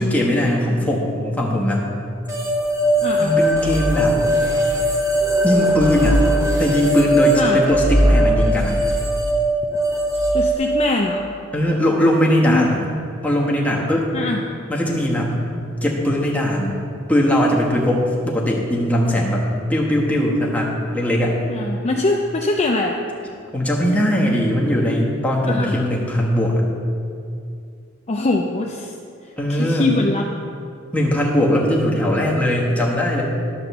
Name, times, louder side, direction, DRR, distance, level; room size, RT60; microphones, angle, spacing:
voice 1, 0.0-1.8 3.2-4.2 5.4-6.2 6.6-8.8 11.5-12.7 13.2-14.1 14.7-15.4 15.8-16.8 17.1-19.4 19.7-21.4 23.5-26.6 29.4-29.9 30.9-33.2, equal, 5° left, -3 dB, 1.2 m, -19 dB
sound 1, 2.3-10.5, equal, 15° right, 0.9 m, -19 dB
voice 2, 3.0-3.3 7.4-7.6 10.3-11.3 12.4-12.7 14.1-14.4 21.5-23.0 25.4-25.7 28.1-28.9 29.5-30.3, left 2 dB, 30° left, 0 dB, 0.5 m, -22 dB
11.0 x 3.8 x 6.8 m, 2.4 s
head